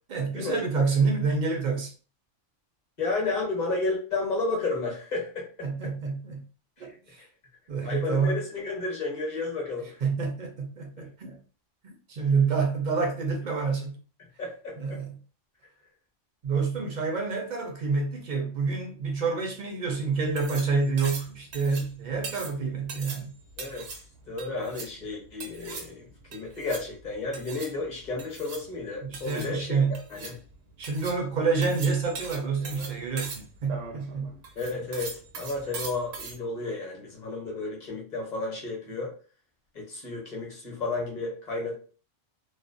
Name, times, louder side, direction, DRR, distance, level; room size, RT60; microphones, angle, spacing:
voice 1, 0.1-1.9 5.6-6.4 6.8-7.2 7.7-8.4 10.0-11.4 12.1-13.9 14.8-15.2 16.4-23.3 29.0-30.0 30.8-34.3, right 4 dB, 55° right, 0.5 m, -28 dB
voice 2, 3.0-5.7 6.8-6.9 7.8-10.0 11.0-11.1 14.4-15.0 23.6-23.9 24.3-29.8 30.1-30.4 34.6-39.1 39.7-41.7, left 3 dB, 40° left, 0.8 m, -32 dB
sound 1, 20.1-36.4, right 4 dB, 90° right, 1.0 m, -41 dB
2.5 x 2.0 x 2.5 m
omnidirectional pair, 1.3 m